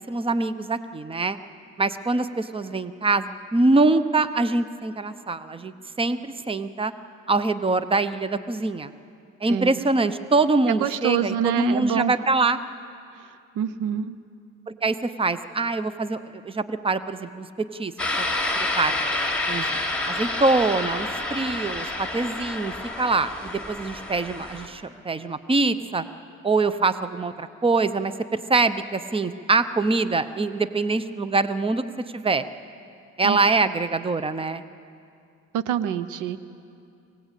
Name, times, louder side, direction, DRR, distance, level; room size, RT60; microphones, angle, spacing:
voice 1, 0.1-1.4 1.8-6.9 7.3-8.9 9.4-12.6 14.7-17.9 18.2-18.3 18.6-19.0 19.5-19.7 20.1-26.0 26.4-31.8 32.1-32.4 33.2-34.6, right 3 dB, 20° right, 13 dB, 0.8 m, -24 dB
voice 2, 9.5-9.8 10.7-12.1 13.6-14.2 33.2-33.4 35.5-36.4, right 9 dB, 85° right, 15 dB, 0.8 m, -26 dB
sound 1, 18.0-24.7, left 2 dB, 5° left, 3.3 m, -28 dB
24.0 x 18.0 x 8.3 m, 2.5 s
cardioid pair, 90°, 30 cm